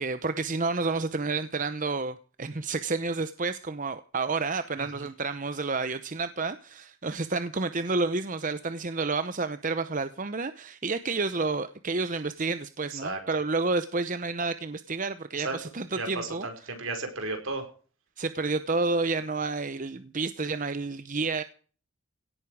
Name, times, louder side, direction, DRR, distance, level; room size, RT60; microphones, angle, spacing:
voice 1, 0.0-16.5 18.2-21.4, right 3 dB, 35° right, 0.8 m, -30 dB
voice 2, 4.7-5.1 12.9-13.2 15.4-15.6 15.9-17.6, right 3 dB, 65° right, 5.0 m, -34 dB
17.5 x 13.5 x 4.8 m
head